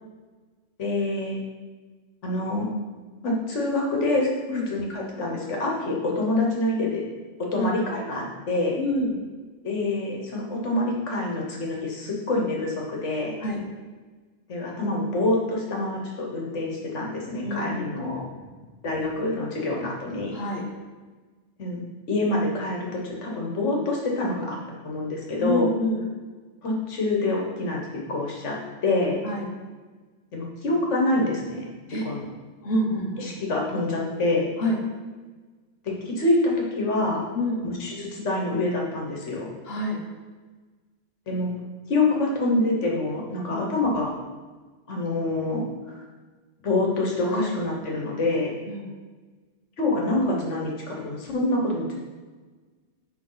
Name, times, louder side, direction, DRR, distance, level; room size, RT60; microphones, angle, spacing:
voice 1, 0.8-1.4 2.2-2.7 3.2-7.0 7.4-8.8 9.6-13.4 14.5-18.3 18.8-20.3 21.6-21.8 22.1-24.6 24.8-25.7 26.6-29.2 30.3-31.6 32.0-32.3 33.2-34.5 35.8-37.2 37.6-39.5 41.3-41.5 41.9-44.1 44.9-46.0 46.6-48.5 49.8-51.9, left 2 dB, 75° left, -1 dB, 1.5 m, -26 dB
voice 2, 8.8-9.1 13.4-13.6 17.4-17.9 20.3-20.7 25.4-26.0 29.2-29.5 31.9-32.0 32.6-33.3 34.6-34.8 37.3-37.6 39.6-40.0 43.5-43.8 47.3-47.6 48.7-48.9, left 1 dB, 55° left, 0 dB, 1.3 m, -27 dB
8.9 x 3.5 x 3.9 m, 1.3 s
omnidirectional pair, 1.2 m